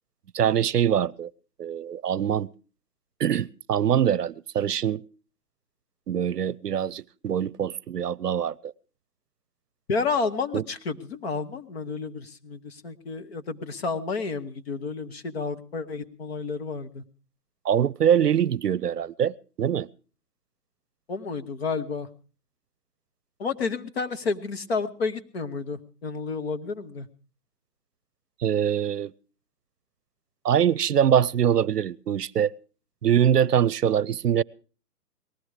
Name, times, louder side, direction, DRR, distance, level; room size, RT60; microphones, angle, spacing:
voice 1, 0.3-1.3 1.6-2.5 3.2-5.0 6.1-8.7 10.5-10.7 17.6-19.9 28.4-29.1 30.4-32.5 33.0-34.4, right 9 dB, 75° right, 0.7 m, -23 dB
voice 2, 9.9-17.0 21.1-22.1 23.4-27.1, left 4 dB, 40° left, 1.2 m, -31 dB
19.0 x 13.5 x 4.9 m
figure-of-eight pair, 145°, 48 cm